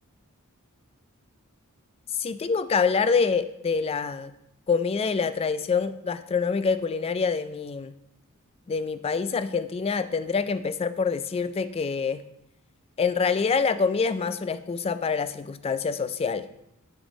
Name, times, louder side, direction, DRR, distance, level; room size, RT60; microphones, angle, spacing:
voice 1, 2.1-4.3 4.7-7.9 8.7-12.2 13.0-16.5, left 5 dB, 25° left, 13 dB, 0.3 m, -26 dB
7.9 x 4.0 x 5.0 m, 0.82 s
head